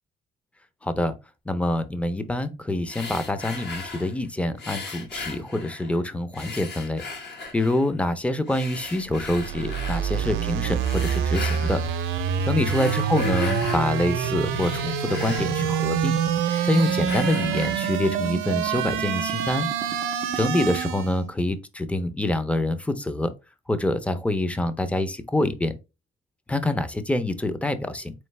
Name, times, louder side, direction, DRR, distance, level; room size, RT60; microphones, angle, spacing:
voice 1, 0.8-1.1 1.5-11.8 12.4-16.1 16.6-19.7 20.4-23.3 23.7-25.8 26.5-28.1, left 1 dB, 5° left, 0.5 m, -26 dB
sound 1, 2.9-4.2 4.6-6.0 6.3-7.9 8.5-10.1 10.8-11.9 12.5-13.9 14.3-16.1 16.4-17.9, left 4 dB, 60° left, 1.2 m, -37 dB
sound 2, 9.0-21.2, right 7 dB, 85° right, 0.6 m, -26 dB
3.9 x 3.2 x 3.2 m
cardioid pair, 90°, 20 cm